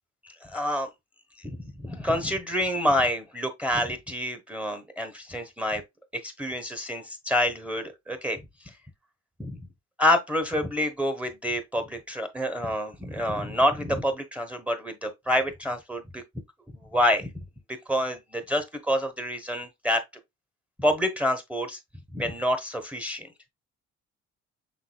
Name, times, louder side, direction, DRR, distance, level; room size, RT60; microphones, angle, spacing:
voice 1, 0.2-0.9 1.6-5.8 6.2-8.4 9.4-9.6 10.0-16.2 16.9-17.3 17.7-20.0 20.8-21.8 22.1-23.3, equal, 5° right, 1.0 m, -27 dB
6.0 x 3.7 x 2.3 m
cardioid pair, 90°, 30 cm